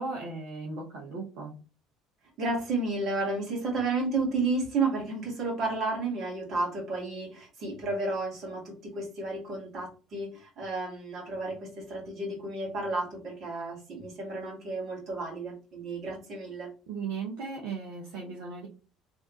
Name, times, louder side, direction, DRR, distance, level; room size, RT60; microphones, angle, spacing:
voice 1, 0.0-1.6 16.9-18.7, right 4 dB, 65° right, -2 dB, 1.0 m, -36 dB
voice 2, 2.4-16.7, right 3 dB, 50° right, -1 dB, 2.1 m, -32 dB
3.5 x 3.3 x 3.1 m, 0.34 s
hypercardioid pair, 60°, 0 cm